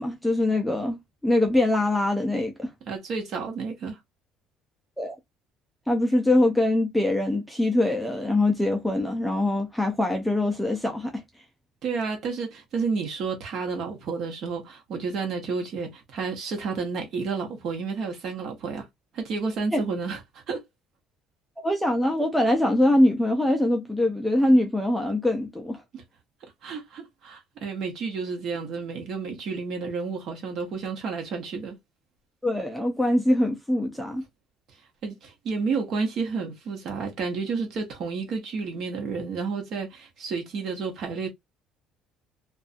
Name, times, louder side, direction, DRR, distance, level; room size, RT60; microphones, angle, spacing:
voice 1, 0.0-2.7 5.0-5.2 5.9-11.2 19.7-19.8 21.6-25.8 32.4-34.2, left 1 dB, ahead, 0.4 m, -23 dB
voice 2, 2.9-4.0 11.8-18.9 19.1-20.6 25.9-26.0 26.6-31.8 35.0-41.3, right 4 dB, 45° right, 1.0 m, -31 dB
2.6 x 2.2 x 2.5 m
cardioid pair, 180°, 0 cm